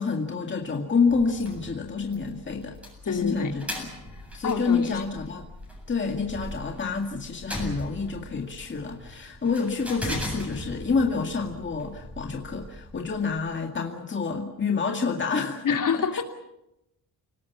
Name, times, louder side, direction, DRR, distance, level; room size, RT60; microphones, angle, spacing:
voice 1, 0.0-2.8 3.0-3.9 4.3-5.4 5.9-15.8, left 4 dB, 30° left, 2 dB, 2.2 m, -28 dB
sound 1, 1.1-13.5, left 1 dB, 5° right, 7.7 m, -39 dB
voice 2, 3.0-3.5 4.4-5.0 12.9-13.0 15.6-16.2, left 6 dB, 55° left, 4 dB, 3.1 m, -27 dB
29.5 x 19.5 x 7.3 m, 0.86 s
wide cardioid pair, 155°, 38 cm